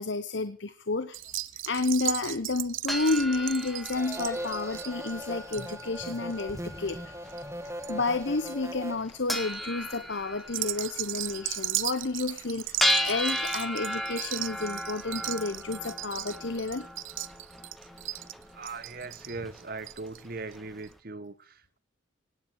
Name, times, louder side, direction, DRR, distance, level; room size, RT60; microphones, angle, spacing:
voice 1, 0.0-7.1 7.9-16.9, left 3 dB, 65° left, 1.0 m, -31 dB
sound 1, 1.1-7.9 8.2-8.7 9.3-9.6 10.4-20.2 20.5-20.6 20.8-20.9, right 15 dB, 75° right, 0.8 m, -36 dB
sound 2, 2.9-20.8, equal, ahead, 1.5 m, -36 dB
sound 3, 3.9-9.0, equal, 15° right, 2.2 m, -39 dB
voice 2, 18.5-21.8, right 3 dB, 45° right, 1.2 m, -40 dB
18.0 x 10.5 x 6.5 m
head